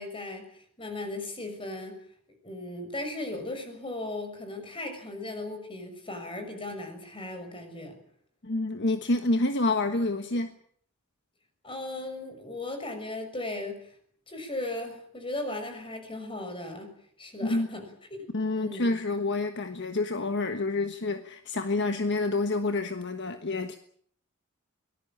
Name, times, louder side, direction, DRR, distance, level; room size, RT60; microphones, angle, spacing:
voice 1, 0.0-2.0 2.4-8.0 11.6-13.9 14.3-16.9 17.2-17.9 18.5-18.9, left 2 dB, 25° left, 6.5 m, -37 dB
voice 2, 8.4-10.5 17.4-17.7 18.3-23.8, left 2 dB, 55° left, 1.4 m, -28 dB
24.0 x 19.5 x 8.8 m
head